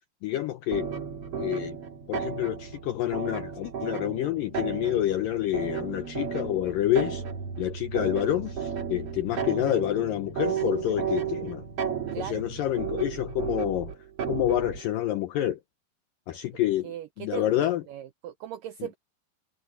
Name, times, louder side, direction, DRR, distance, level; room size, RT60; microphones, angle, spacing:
voice 1, 0.2-0.9 1.4-1.8 2.1-7.2 7.6-11.6 12.2-13.9 14.3-15.6 16.3-16.9 17.2-17.8, left 13 dB, 80° left, 2.0 m, -28 dB
sound 1, 0.7-14.8, right 7 dB, 45° right, 2.4 m, -34 dB
voice 2, 12.1-12.4 16.8-18.9, right 11 dB, 85° right, 1.9 m, -38 dB
omnidirectional pair, 4.9 m